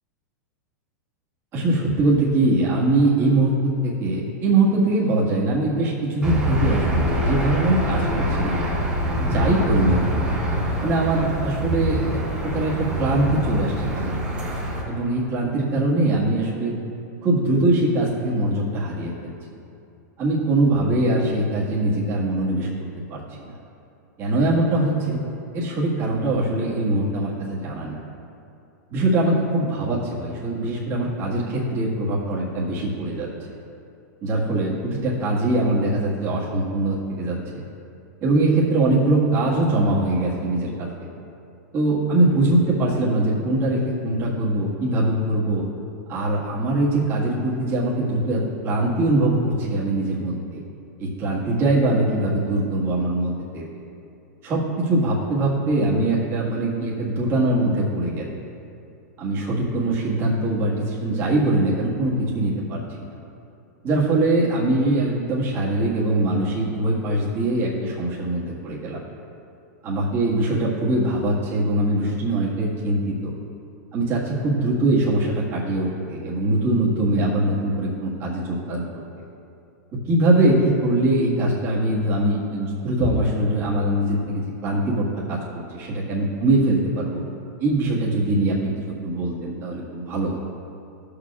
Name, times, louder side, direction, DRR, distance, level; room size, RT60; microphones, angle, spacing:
voice 1, 1.5-8.9 9.2-10.2 10.8-14.2 14.9-16.7 17.2-19.3 20.2-22.7 23.1-23.5 24.2-25.2 25.5-28.0 28.9-33.3 34.2-37.6 38.2-41.1 41.7-45.6 46.1-50.6 51.0-53.6 54.4-58.3 59.2-62.8 63.8-69.0 69.8-73.3 73.9-78.8 80.1-85.4 85.7-87.2 87.6-88.7 89.0-90.4, right 2 dB, 25° right, -7 dB, 1.7 m, -22 dB
Aircraft / Engine, 6.2-14.8, equal, 10° right, 1.5 m, -25 dB
13.5 x 6.8 x 2.4 m, 2.7 s
supercardioid pair, 160°, 9 cm